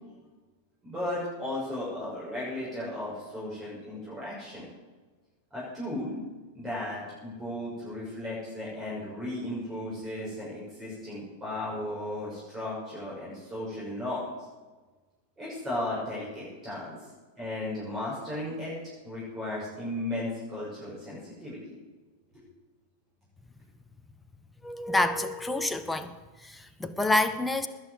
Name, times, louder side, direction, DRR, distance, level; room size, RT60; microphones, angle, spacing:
voice 1, 0.8-4.7 5.5-6.2 6.5-14.2 15.4-17.0 17.4-18.8 19.0-21.8, left 1 dB, 15° right, -7 dB, 6.4 m, -35 dB
voice 2, 24.6-26.1 26.4-27.7, left 2 dB, 5° left, 10 dB, 1.0 m, -28 dB
20.0 x 6.9 x 8.1 m, 1.3 s
figure-of-eight pair, 90°, 0 cm